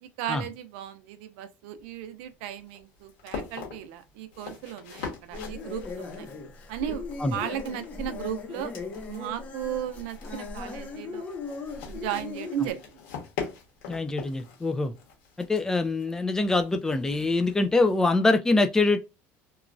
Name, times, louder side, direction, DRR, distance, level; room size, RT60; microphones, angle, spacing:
voice 1, 0.0-6.3 6.7-8.7 9.1-11.3 11.9-13.0, right 10 dB, 85° right, 0.5 m, -35 dB
sound 1, 1.7-18.1, left 6 dB, 85° left, 1.4 m, -43 dB
sound 2, 5.3-12.7, left 3 dB, 25° left, 0.8 m, -38 dB
voice 2, 13.9-14.9 15.5-19.0, left 2 dB, 10° left, 0.3 m, -24 dB
2.9 x 2.3 x 2.5 m
cardioid pair, 145°, 6 cm